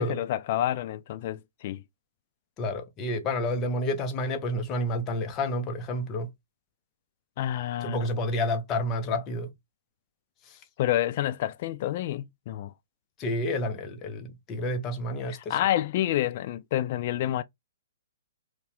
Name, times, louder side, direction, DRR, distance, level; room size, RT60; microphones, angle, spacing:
voice 1, 0.0-1.8 7.4-8.1 10.8-12.7 15.3-17.4, left 13 dB, 40° left, 0.4 m, -28 dB
voice 2, 2.6-6.3 7.8-9.5 10.5-10.6 13.2-15.6, left 1 dB, 25° left, 0.8 m, -29 dB
4.1 x 2.4 x 3.9 m
figure-of-eight pair, 120°, 0 cm